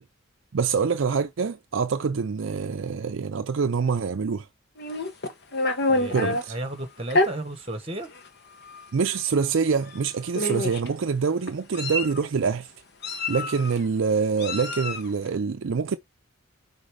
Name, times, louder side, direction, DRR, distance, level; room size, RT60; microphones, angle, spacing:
voice 1, 0.5-4.5 6.1-6.5 8.9-12.7 13.3-16.0, right 5 dB, 60° right, 0.4 m, -25 dB
Meow, 4.8-6.4 7.1-7.3 8.1-8.3 8.6-8.8 9.9-10.0 10.3-10.9 11.5-12.2 13.0-13.8 14.4-15.1, left 2 dB, 50° left, 1.2 m, -27 dB
voice 2, 5.9-8.1, right 1 dB, 30° right, 1.4 m, -34 dB
5.4 x 3.9 x 5.0 m
head